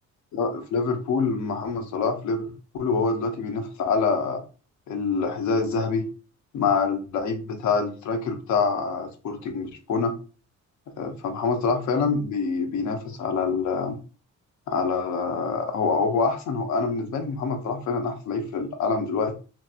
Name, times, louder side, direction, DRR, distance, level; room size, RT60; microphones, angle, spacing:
voice 1, 0.3-2.5 2.7-4.4 4.9-6.1 6.5-10.1 11.0-14.0 14.7-19.4, left 4 dB, 70° left, 0.7 m, -26 dB
2.8 x 2.7 x 2.4 m
cardioid pair, 90°, 30 cm